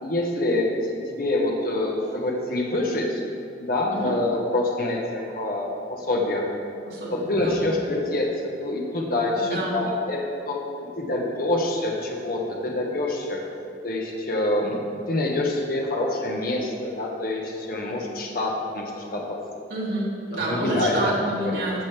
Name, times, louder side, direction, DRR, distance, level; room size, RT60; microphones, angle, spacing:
voice 1, 0.0-3.2 3.6-6.5 7.1-8.3 8.6-10.6 11.0-13.4 13.8-14.8 15.1-19.4 20.3-21.1 21.4-21.6, left 2 dB, 55° left, -1 dB, 1.3 m, -26 dB
voice 2, 6.9-7.6 9.4-9.8 19.7-21.8, right 1 dB, 75° right, -7 dB, 2.4 m, -28 dB
14.5 x 6.3 x 3.4 m, 2.5 s
head